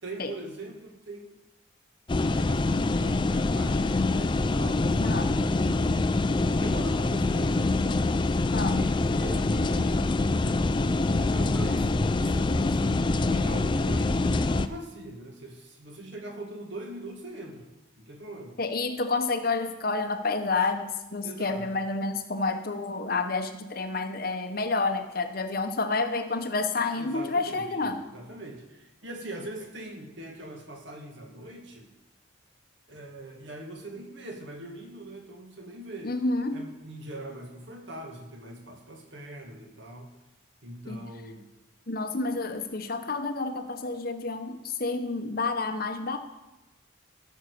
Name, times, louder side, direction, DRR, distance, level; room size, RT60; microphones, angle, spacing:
voice 1, 0.0-1.4 2.3-5.9 6.6-8.0 8.7-10.8 11.2-17.7 18.0-18.6 21.2-21.8 27.0-31.9 32.9-36.2 36.5-40.1 40.6-41.5, right 1 dB, 65° right, 2 dB, 2.0 m, -42 dB
sound 1, 2.1-14.7, left 2 dB, 25° left, 0.3 m, -25 dB
voice 2, 5.0-5.3 8.5-8.8 18.6-28.0 36.0-36.6 40.9-41.1 41.9-46.2, left 3 dB, 45° left, 7 dB, 0.9 m, -29 dB
14.0 x 6.4 x 6.8 m, 0.99 s
head